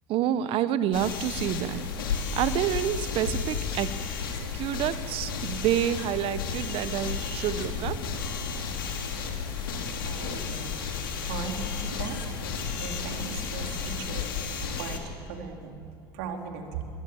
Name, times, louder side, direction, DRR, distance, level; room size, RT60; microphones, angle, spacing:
voice 1, 0.1-3.9 4.5-8.0, right 10 dB, 55° right, 15 dB, 1.0 m, -28 dB
sound 1, 0.9-15.0, left 5 dB, 85° left, 2.6 m, -32 dB
voice 2, 10.0-10.7 11.2-12.2 12.8-15.7 16.1-16.8, right 7 dB, 70° right, 4 dB, 3.0 m, -38 dB
24.5 x 16.5 x 7.3 m, 2.5 s
hypercardioid pair, 75°, 11 cm